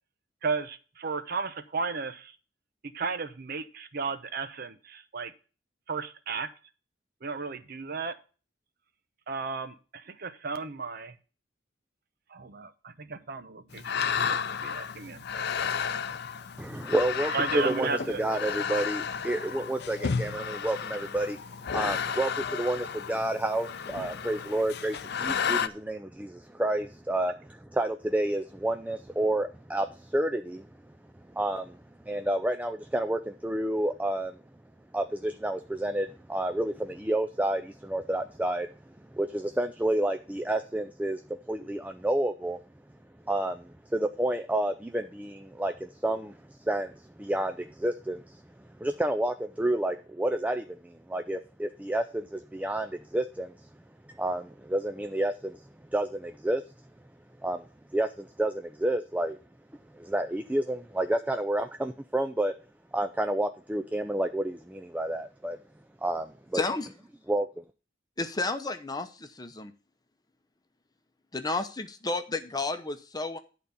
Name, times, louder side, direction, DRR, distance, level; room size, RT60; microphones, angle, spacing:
voice 1, 0.4-2.4 2.8-5.3 5.9-6.5 7.2-8.2 9.3-11.2 12.3-15.5 17.2-18.4, right 4 dB, 55° right, 11 dB, 0.8 m, -34 dB
sound 1, 13.7-25.7, left 6 dB, 60° left, 0.6 m, -32 dB
voice 2, 16.6-21.4 21.7-30.7 31.3-31.8 32.1-34.3 34.9-38.7 39.1-42.6 43.3-48.4 48.8-53.6 54.1-55.6 55.9-56.6 57.4-59.4 59.9-62.6 62.9-65.6 66.0-66.6 67.3-67.6, right 1 dB, 10° right, 7 dB, 0.4 m, -30 dB
voice 3, 66.5-66.9 68.2-69.7 71.3-73.4, left 3 dB, 20° left, 8 dB, 0.8 m, -32 dB
11.0 x 4.0 x 6.9 m, 0.35 s
head